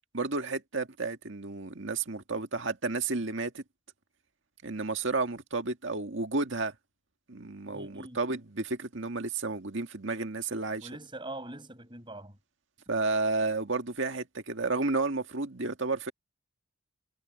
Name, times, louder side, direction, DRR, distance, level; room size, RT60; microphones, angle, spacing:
voice 1, 0.1-3.6 4.6-6.7 7.3-10.9 12.9-16.1, right 3 dB, 60° right, 1.9 m, -32 dB
voice 2, 7.7-8.2 10.8-12.4, right 2 dB, 25° right, 7.9 m, -43 dB
head